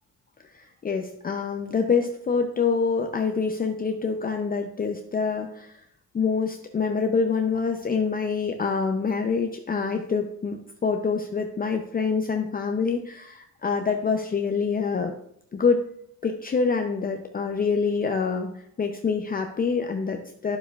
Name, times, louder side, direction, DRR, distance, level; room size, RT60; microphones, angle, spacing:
voice 1, 0.5-5.7 6.1-15.1 15.5-15.8 16.2-18.5 18.8-20.6, left 5 dB, 30° left, 4 dB, 0.6 m, -26 dB
9.6 x 7.1 x 2.4 m, 0.71 s
cardioid pair, 90°, 30 cm